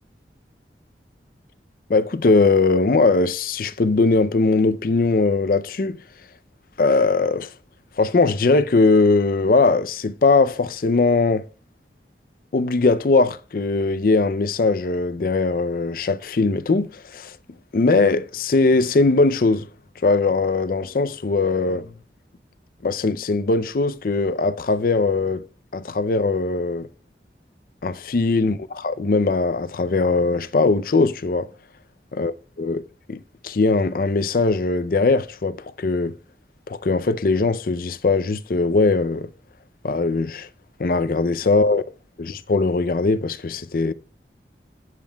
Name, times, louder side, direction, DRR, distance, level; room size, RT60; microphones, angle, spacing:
voice 1, 1.9-6.0 6.8-7.5 8.0-11.4 12.5-17.4 17.7-19.7 20.0-21.9 22.8-25.4 25.7-26.9 27.8-28.5 28.8-31.5 32.1-32.8 33.1-36.1 36.7-39.3 39.8-40.5 40.8-41.8 42.2-43.9, left 3 dB, 50° left, 0.5 m, -20 dB
15.5 x 7.5 x 2.2 m
head